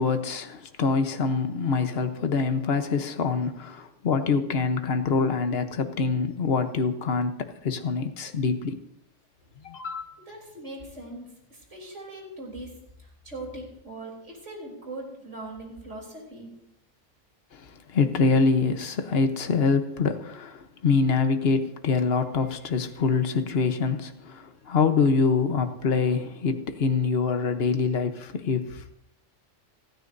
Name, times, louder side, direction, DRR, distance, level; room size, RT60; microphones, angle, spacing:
voice 1, 0.0-8.8 9.6-10.0 17.5-28.9, left 5 dB, 55° left, 8 dB, 1.2 m, -25 dB
voice 2, 10.3-12.7 13.0-16.5, right 2 dB, 70° right, -1 dB, 3.9 m, -40 dB
29.0 x 9.7 x 2.7 m, 0.80 s
omnidirectional pair, 1.3 m